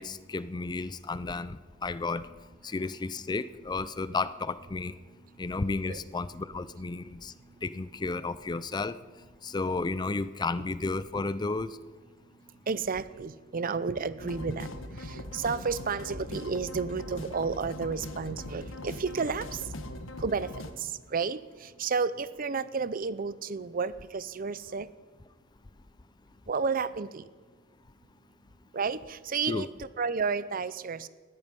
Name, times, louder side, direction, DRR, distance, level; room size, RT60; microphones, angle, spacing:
voice 1, 0.0-2.3 2.6-4.9 5.4-7.3 7.6-9.0 9.4-11.8 29.5-29.7, left 3 dB, 20° left, 15 dB, 0.4 m, -32 dB
voice 2, 12.7-14.7 15.0-19.6 20.2-20.5 21.1-21.4 21.8-24.9 26.5-27.2 28.7-31.1, right 5 dB, 45° right, 16 dB, 0.6 m, -31 dB
sound 1, 14.2-20.7, left 1 dB, 85° left, 1.4 m, -40 dB
19.0 x 14.5 x 5.3 m, 1.5 s
head